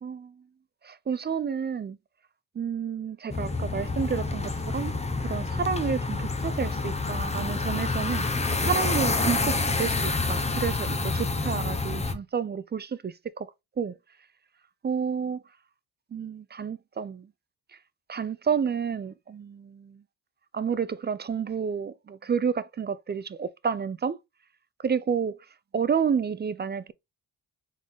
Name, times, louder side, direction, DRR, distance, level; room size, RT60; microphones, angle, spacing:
voice 1, 0.0-0.3 0.8-2.0 2.6-8.3 8.5-13.5 13.8-14.0 14.8-15.4 16.1-17.3 18.1-20.0 20.5-24.2 24.8-25.4 25.7-26.9, right 7 dB, 30° right, 0.4 m, -30 dB
sound 1, 3.3-12.1, left 3 dB, 15° left, 0.8 m, -28 dB
4.0 x 3.7 x 3.4 m
cardioid pair, 85°, 38 cm